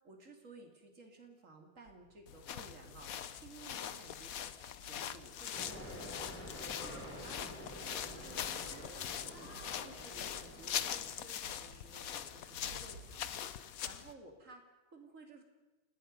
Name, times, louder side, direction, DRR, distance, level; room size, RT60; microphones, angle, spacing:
voice 1, 0.0-9.5 9.8-15.4, right 2 dB, 40° right, 3 dB, 3.3 m, -56 dB
sound 1, 1.8-13.2, right 3 dB, 70° right, 3.1 m, -61 dB
sound 2, 2.3-14.1, left 9 dB, 60° left, 1.0 m, -42 dB
sound 3, 5.5-11.2, equal, 5° left, 3.6 m, -49 dB
28.5 x 18.5 x 5.5 m, 1.1 s
omnidirectional pair, 2.2 m